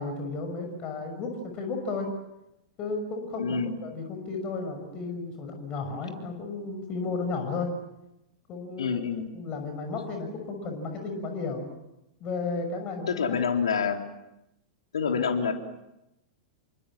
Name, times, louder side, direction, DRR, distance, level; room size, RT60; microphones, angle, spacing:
voice 1, 0.0-2.1 2.8-7.7 8.5-9.0 9.3-11.7 12.2-13.4, left 3 dB, 35° left, 5 dB, 6.3 m, -33 dB
voice 2, 3.4-3.8 8.8-9.3 13.1-14.0 14.9-15.5, left 6 dB, 70° left, 4 dB, 3.7 m, -27 dB
28.5 x 24.5 x 7.5 m, 0.89 s
figure-of-eight pair, 95°, 3 cm